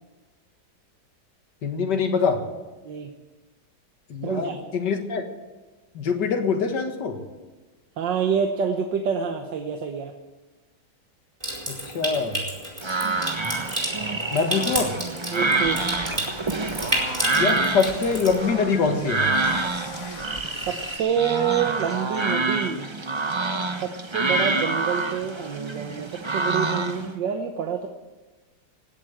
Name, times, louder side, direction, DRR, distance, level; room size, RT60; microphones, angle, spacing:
voice 1, 1.6-2.4 4.1-5.3 5.9-7.2 11.7-12.4 14.3-14.9 17.3-19.3, left 5 dB, 65° left, 5 dB, 2.2 m, -24 dB
voice 2, 4.2-4.6 8.0-10.1 15.3-15.9 20.6-22.9 23.8-27.9, right 7 dB, 75° right, 5 dB, 1.6 m, -27 dB
Water tap faucet / Sink (filling or washing) / Trickle dribble, 11.4-18.4, right 1 dB, 15° right, 4.7 m, -31 dB
sound 1, 12.8-27.1, right 3 dB, 35° right, 0.4 m, -27 dB
sound 2, 15.6-21.0, left 3 dB, 35° left, 1.5 m, -40 dB
18.5 x 8.2 x 8.9 m, 1.3 s
omnidirectional pair, 2.0 m